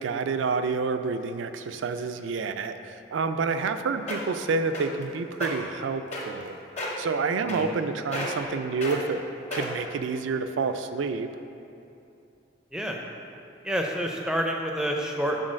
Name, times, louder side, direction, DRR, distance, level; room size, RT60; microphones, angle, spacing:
voice 1, 0.0-6.6 7.0-9.2 9.5-11.3, right 4 dB, 80° right, 9 dB, 0.4 m, -28 dB
sound 1, 3.7-3.8 4.1-4.4 4.7-5.0 5.3-5.5 6.1-6.5 6.8-7.0 7.5-7.8 8.1-8.5 8.8-9.0 9.5-9.9 10.5-10.6, left 1 dB, 35° left, 0.9 m, -32 dB
voice 2, 13.6-15.5, equal, 5° right, 1 dB, 0.4 m, -28 dB
6.4 x 3.9 x 6.2 m, 2.7 s
head